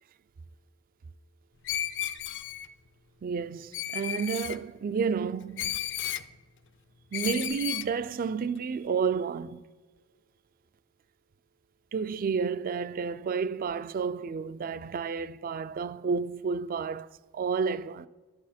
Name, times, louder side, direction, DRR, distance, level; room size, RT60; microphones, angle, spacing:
Screech, 1.7-2.7 3.7-4.6 5.6-6.3 7.1-7.9, left 11 dB, 55° left, 0.5 m, -33 dB
voice 1, 3.2-5.8 7.1-9.6 11.9-17.1 17.3-18.1, right 5 dB, 40° right, 0.3 m, -31 dB
12.0 x 9.6 x 4.2 m
head